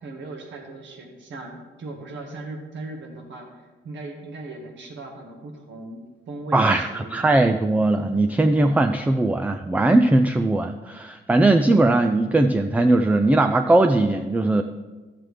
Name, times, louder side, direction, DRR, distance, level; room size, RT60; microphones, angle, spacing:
voice 1, 0.0-7.3, right 2 dB, 65° right, 2 dB, 1.7 m, -38 dB
voice 2, 6.5-14.6, right 2 dB, 5° right, 8 dB, 0.4 m, -19 dB
12.0 x 7.6 x 3.3 m, 1.3 s
cardioid pair, 90°, 20 cm